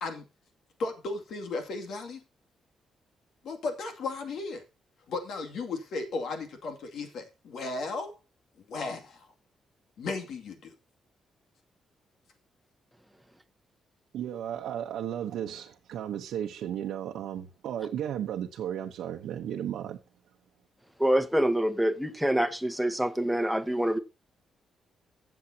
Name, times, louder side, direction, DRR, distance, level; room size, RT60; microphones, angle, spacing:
voice 1, 0.8-2.2 3.4-4.6 5.1-8.1 8.7-9.3 10.0-10.7, left 3 dB, 70° left, 2.4 m, -35 dB
voice 2, 14.1-20.0, right 10 dB, 90° right, 0.9 m, -34 dB
voice 3, 21.0-24.0, right 1 dB, ahead, 1.1 m, -26 dB
16.5 x 7.3 x 2.8 m
cardioid pair, 115°, 0 cm